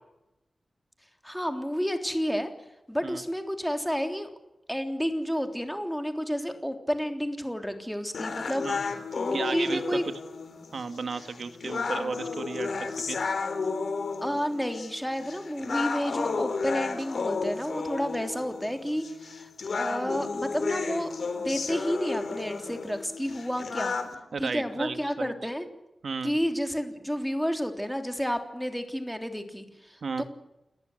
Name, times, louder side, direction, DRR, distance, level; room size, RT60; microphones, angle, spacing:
voice 1, 1.2-2.5 2.9-4.3 4.7-8.7 9.2-10.0 14.2-19.5 19.8-21.1 21.4-24.0 24.4-25.7 26.2-30.2, equal, ahead, 5 dB, 3.4 m, -30 dB
sound 1, 8.1-24.2, left 4 dB, 80° left, 3.7 m, -33 dB
voice 2, 9.3-10.0 10.7-13.2 24.3-25.4 26.0-26.4 30.0-30.2, right 4 dB, 75° right, 9 dB, 2.2 m, -34 dB
29.5 x 19.0 x 8.0 m, 0.94 s
wide cardioid pair, 125°, 0 cm